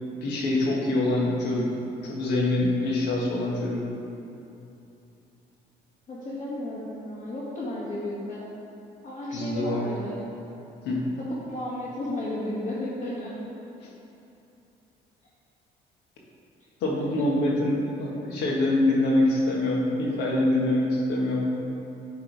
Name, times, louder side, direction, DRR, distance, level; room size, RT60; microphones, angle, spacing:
voice 1, 0.2-1.7 2.0-3.8 9.3-9.9 10.8-11.0 16.8-21.5, left 1 dB, 85° left, -3 dB, 1.5 m, -25 dB
voice 2, 6.1-8.4 9.0-10.2 11.4-13.4 17.0-17.1, left 1 dB, 45° left, -9 dB, 1.7 m, -33 dB
9.3 x 3.7 x 4.7 m, 2.9 s
cardioid pair, 110°, 17 cm